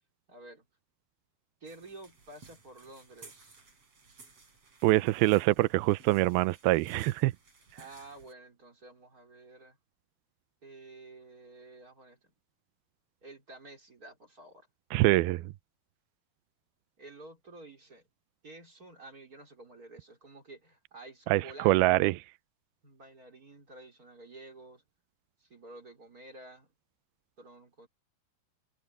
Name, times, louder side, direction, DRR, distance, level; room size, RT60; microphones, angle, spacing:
voice 1, 0.3-0.7 1.6-3.6 7.7-9.8 10.6-12.3 13.2-14.7 17.0-18.0 18.4-22.0 22.8-24.8 25.4-26.7 27.4-27.9, right 2 dB, 20° right, 4.4 m, -50 dB
sound 1, 1.6-8.3, right 4 dB, 35° right, 5.6 m, -57 dB
voice 2, 4.8-7.3 14.9-15.4 21.3-22.1, right 18 dB, 80° right, 2.3 m, -24 dB
omnidirectional pair, 4.7 m